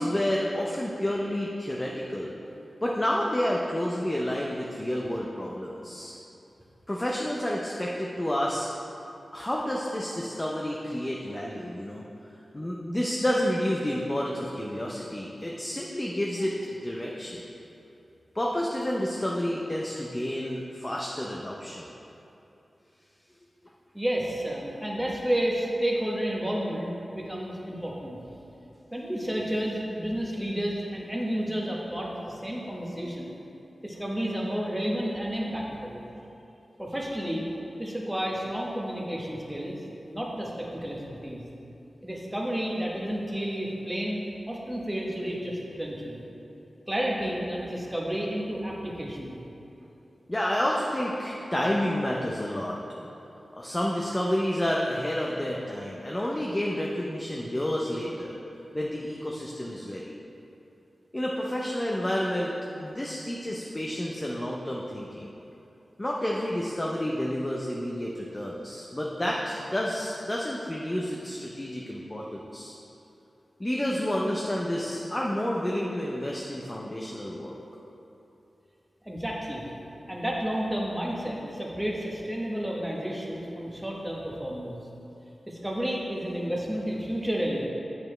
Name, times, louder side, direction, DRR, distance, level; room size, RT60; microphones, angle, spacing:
voice 1, 0.0-2.4 2.8-6.1 6.9-8.7 9.3-12.0 12.5-17.4 18.3-21.9 50.3-53.1 53.5-58.4 58.7-60.2 61.1-62.5 62.8-65.3 66.0-72.8 73.6-77.6, left 1 dB, 15° left, -3 dB, 0.5 m, -30 dB
voice 2, 23.9-28.2 28.9-33.3 33.8-36.0 36.8-37.5 37.8-41.4 42.0-46.2 46.9-49.4 79.0-79.6 80.1-84.9 85.5-87.7, equal, 5° right, -3 dB, 1.0 m, -31 dB
8.2 x 6.8 x 3.2 m, 2.9 s
wide cardioid pair, 125°, 0 cm